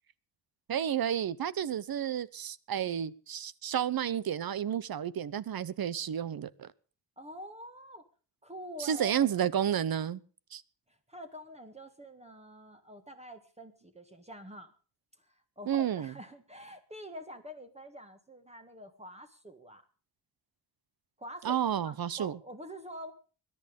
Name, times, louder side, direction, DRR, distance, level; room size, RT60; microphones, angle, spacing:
voice 1, 0.7-6.7 8.8-10.2 10.5-10.6 15.7-16.1 21.4-22.4, right 9 dB, 55° right, 0.9 m, -31 dB
voice 2, 7.2-8.0 8.4-9.3 10.9-14.7 15.2-19.8 21.2-21.6 21.8-23.1, equal, 15° right, 1.7 m, -46 dB
21.0 x 11.0 x 5.3 m
wide cardioid pair, 155°, 42 cm